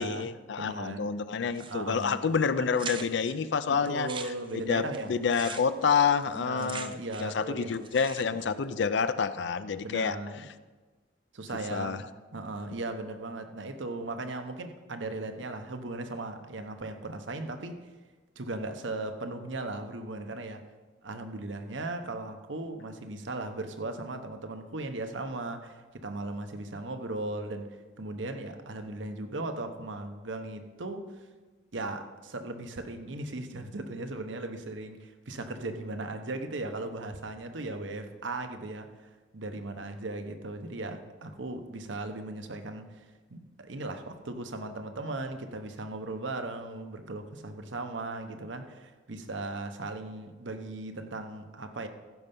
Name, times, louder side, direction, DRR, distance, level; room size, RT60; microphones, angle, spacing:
voice 1, 0.0-4.1 4.5-10.2 11.7-12.0, left 6 dB, 65° left, 13 dB, 0.4 m, -28 dB
voice 2, 0.6-1.1 1.6-2.2 2.6-2.8 3.7-5.1 6.3-7.7 9.8-10.5 11.3-12.0 12.3-17.8 18.4-20.6 21.0-27.7 28.0-31.0 31.7-38.9 39.3-43.0 43.3-51.9, right 2 dB, 75° right, 7 dB, 1.0 m, -37 dB
sound 1, 1.5-2.0 2.3-2.4 2.8-3.3 3.9-7.4 7.7-8.5, right 6 dB, 25° right, 0.5 m, -42 dB
15.5 x 5.6 x 5.4 m, 1.3 s
head